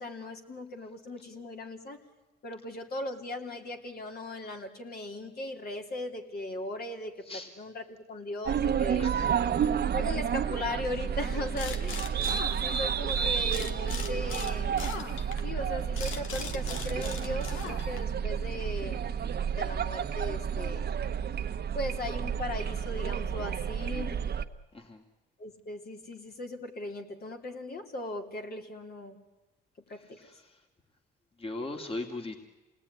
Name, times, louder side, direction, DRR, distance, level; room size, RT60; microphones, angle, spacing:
voice 1, 0.0-2.0 2.4-9.1 9.9-12.2 12.6-14.8 15.4-19.1 19.5-20.9 21.7-24.3 25.4-29.2 29.9-30.2, left 1 dB, 50° left, 3 dB, 3.3 m, -38 dB
sound 1, 8.5-24.4, right 7 dB, 55° right, 1.2 m, -31 dB
voice 2, 9.0-9.4 24.7-25.0 30.2-30.6 31.4-32.4, left 2 dB, 30° left, 3 dB, 2.5 m, -38 dB
sound 2, 11.6-13.1 13.5-18.2, left 6 dB, 85° left, 1.8 m, -40 dB
27.5 x 19.0 x 9.7 m, 1.1 s
cardioid pair, 90°, 20 cm